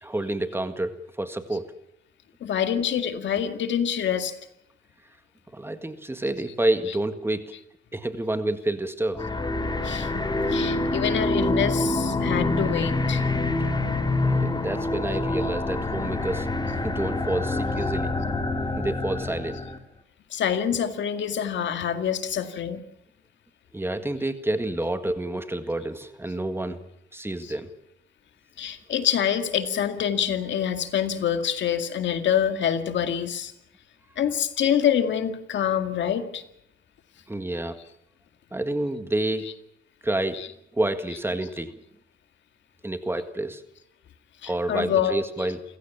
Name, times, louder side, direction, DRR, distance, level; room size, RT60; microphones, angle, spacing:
voice 1, 0.0-1.7 5.5-7.5 7.9-9.2 14.2-16.5 16.8-18.1 18.8-19.6 23.7-26.8 27.1-27.7 37.3-37.8 38.5-39.4 40.0-40.4 40.7-41.7 42.8-43.6 44.5-45.6, right 1 dB, 10° right, 9 dB, 1.8 m, -28 dB
voice 2, 2.4-4.3 9.8-13.2 20.3-22.8 27.4-27.5 28.6-33.5 34.2-36.4 39.4-39.5 40.3-40.5 41.1-41.2 44.4-45.5, left 9 dB, 65° left, 8 dB, 2.1 m, -26 dB
sound 1, 9.1-19.8, left 2 dB, 20° left, 3.1 m, -26 dB
28.5 x 16.0 x 7.2 m, 0.80 s
cardioid pair, 90°, 20 cm